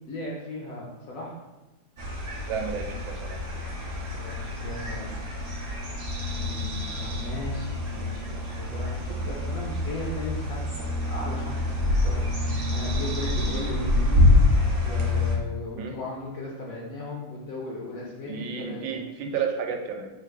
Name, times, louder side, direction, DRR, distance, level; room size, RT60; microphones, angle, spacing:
voice 1, 0.1-1.4 4.1-5.2 6.4-14.4 14.8-19.1, left 2 dB, 65° left, -4 dB, 0.8 m, -37 dB
sound 1, 2.0-15.4, left 2 dB, 70° right, 0.5 m, -26 dB
voice 2, 2.5-3.4 13.4-13.6 15.8-15.9 18.2-20.1, right 6 dB, 90° right, 3 dB, 1.4 m, -32 dB
3.5 x 2.4 x 4.5 m, 1.1 s
omnidirectional pair, 2.1 m